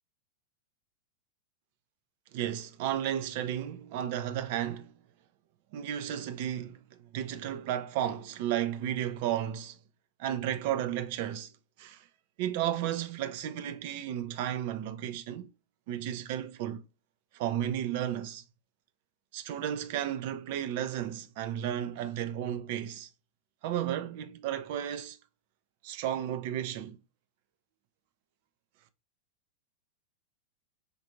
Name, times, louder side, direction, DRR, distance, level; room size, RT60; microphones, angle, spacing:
voice 1, 2.3-4.9 5.7-6.8 7.1-9.8 10.2-11.5 11.8-12.0 12.4-15.5 15.9-16.8 17.3-18.4 19.3-23.1 23.6-25.2 25.8-27.0, right 11 dB, 50° right, 0.4 m, -33 dB
5.1 x 2.5 x 2.9 m
figure-of-eight pair, 90°, 0 cm